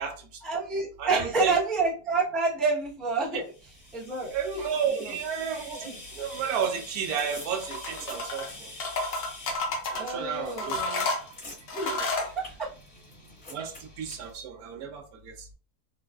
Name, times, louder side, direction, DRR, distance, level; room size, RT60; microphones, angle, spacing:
voice 1, 0.4-3.5 3.9-4.4 5.0-5.1 6.4-6.5 9.9-11.1 11.7-12.7, right 3 dB, ahead, -5 dB, 0.5 m, -29 dB
voice 2, 1.0-1.6 4.3-8.7 9.9-10.8 11.9-12.1 13.5-15.5, right 7 dB, 75° right, 4 dB, 1.1 m, -32 dB
sound 1, 3.4-14.3, left 1 dB, 45° left, 1.8 m, -46 dB
sound 2, 7.6-8.5 8.8-10.1 10.6-12.3, left 2 dB, 60° left, 1.1 m, -30 dB
3.8 x 2.5 x 2.3 m, 0.37 s
omnidirectional pair, 1.6 m